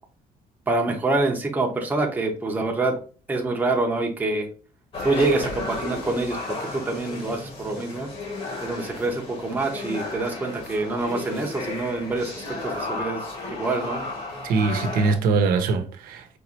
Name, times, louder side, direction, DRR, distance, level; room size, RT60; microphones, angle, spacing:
voice 1, 0.7-2.9 3.3-4.5 5.0-8.1 8.6-13.2 13.6-14.1, right 2 dB, 10° right, 0.8 m, -26 dB
sound 1, 4.9-15.2, left 3 dB, 40° left, 1.3 m, -33 dB
voice 2, 14.4-16.4, right 4 dB, 80° right, 0.9 m, -22 dB
4.9 x 3.1 x 2.9 m
cardioid pair, 170°, 15 cm